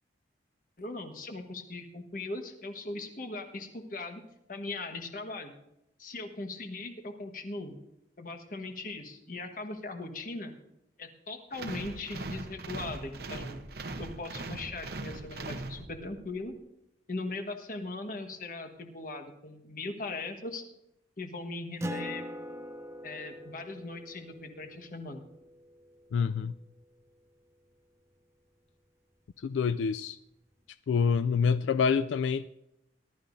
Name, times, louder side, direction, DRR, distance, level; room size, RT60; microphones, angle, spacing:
voice 1, 0.8-4.2 4.5-5.5 6.0-7.7 8.2-10.5 11.0-13.6 14.0-16.5 17.1-20.6 21.2-22.2 23.0-25.2, left 2 dB, 45° left, 5 dB, 1.4 m, -39 dB
sound 1, 11.5-16.3, right 2 dB, 55° right, 0.9 m, -40 dB
Acoustic guitar, 21.8-26.8, equal, 15° right, 0.5 m, -43 dB
voice 2, 26.1-26.5 29.4-30.2 30.9-32.5, left 6 dB, 85° left, 13 dB, 0.3 m, -27 dB
19.5 x 12.0 x 2.6 m, 0.86 s
head